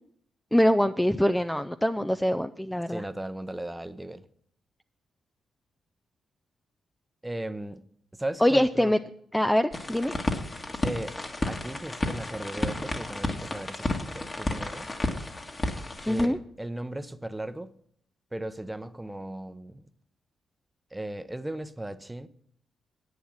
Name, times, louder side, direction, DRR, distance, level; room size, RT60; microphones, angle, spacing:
voice 1, 0.5-3.0 8.4-9.0 9.3-10.1 16.1-16.4, left 1 dB, 5° left, 0.5 m, -24 dB
voice 2, 2.9-4.2 7.2-7.8 8.1-9.0 10.8-11.2 11.4-14.9 16.0-17.7 18.3-19.9 20.9-22.3, right 1 dB, 10° right, 0.8 m, -36 dB
sound 1, 9.7-16.3, left 2 dB, 35° left, 1.8 m, -32 dB
10.0 x 8.9 x 6.3 m
supercardioid pair, 55°, 0 cm